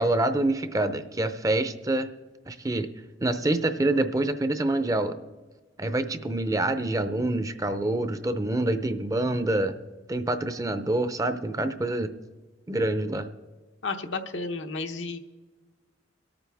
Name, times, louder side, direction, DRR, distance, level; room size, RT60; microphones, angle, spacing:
voice 1, 0.0-2.1 2.5-2.9 3.2-5.2 5.8-9.7 10.1-12.1 12.7-13.3, right 2 dB, 20° right, 10 dB, 0.5 m, -26 dB
voice 2, 13.8-15.2, left 3 dB, 85° left, 6 dB, 1.0 m, -32 dB
23.0 x 9.0 x 3.5 m, 1.3 s
head